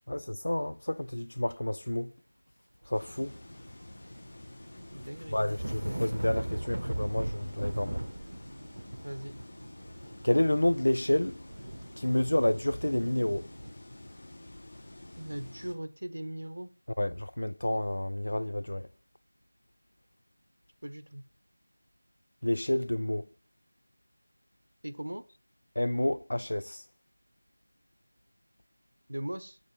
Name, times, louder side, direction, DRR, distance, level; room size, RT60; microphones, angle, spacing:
voice 1, 0.1-2.1 2.9-3.4 5.3-8.0 10.2-11.4 12.0-13.5 17.0-18.9 22.4-23.3 25.8-26.8, left 1 dB, 70° left, 0.4 m, -29 dB
sound 1, 2.9-15.8, left 1 dB, 55° left, 1.7 m, -49 dB
sound 2, 2.9-3.9 4.2-13.7, right 1 dB, 60° right, 1.0 m, -39 dB
voice 2, 4.9-5.4 9.0-9.3 15.2-16.7 20.8-21.2 24.8-25.2 29.1-29.6, right 1 dB, 75° right, 1.1 m, -39 dB
6.6 x 6.6 x 7.6 m
figure-of-eight pair, 175°, 0 cm